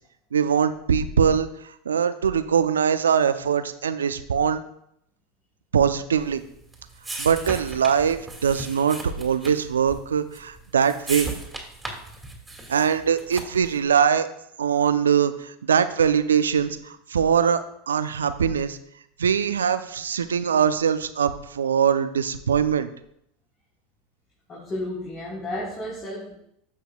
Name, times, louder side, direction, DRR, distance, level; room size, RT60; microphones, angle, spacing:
voice 1, 0.3-4.6 5.7-6.4 7.2-11.3 12.7-14.3 14.6-17.6 17.9-18.8 19.2-22.9, right 7 dB, 85° right, 11 dB, 0.5 m, -22 dB
sound 1, 6.3-13.7, right 2 dB, 10° right, 2.2 m, -37 dB
voice 2, 24.5-26.4, left 1 dB, 35° left, -7 dB, 3.7 m, -32 dB
15.0 x 5.9 x 2.3 m, 0.74 s
hypercardioid pair, 90°, 0 cm